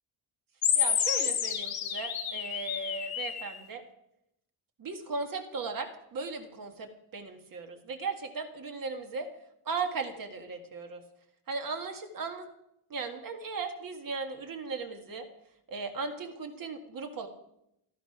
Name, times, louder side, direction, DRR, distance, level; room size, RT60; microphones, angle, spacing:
sound 1, 0.6-3.6, left 9 dB, 65° left, 3.0 m, -30 dB
voice 1, 0.7-3.8 4.8-9.3 9.6-11.0 11.5-12.5 12.9-15.3 15.7-17.3, right 4 dB, 45° right, 5 dB, 1.7 m, -37 dB
15.0 x 12.5 x 5.9 m, 0.82 s
wide cardioid pair, 175°, 48 cm